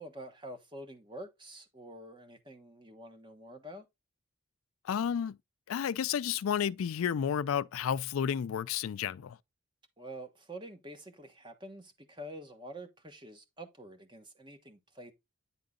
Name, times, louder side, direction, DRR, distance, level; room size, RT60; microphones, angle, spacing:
voice 1, 0.0-3.9 10.0-15.1, right 1 dB, 20° right, 1.2 m, -47 dB
voice 2, 4.8-5.4 5.7-9.4, left 8 dB, 80° left, 0.4 m, -31 dB
9.7 x 3.8 x 3.7 m
head